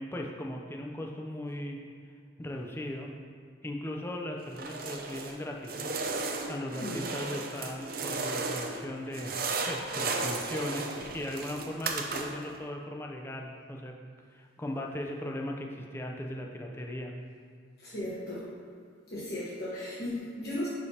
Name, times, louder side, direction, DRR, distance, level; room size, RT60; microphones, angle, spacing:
voice 1, 0.0-1.8 2.4-3.1 3.6-5.9 6.4-9.4 9.6-14.0 14.3-17.1, left 1 dB, 10° left, 1 dB, 0.5 m, -38 dB
sound 1, 4.5-5.4 5.6-8.8 9.1-12.5, right 3 dB, 50° right, 0.6 m, -34 dB
voice 2, 6.7-7.1 17.8-18.4 19.1-20.7, left 1 dB, 55° left, -9 dB, 1.2 m, -36 dB
10.5 x 5.1 x 2.8 m, 2.2 s
head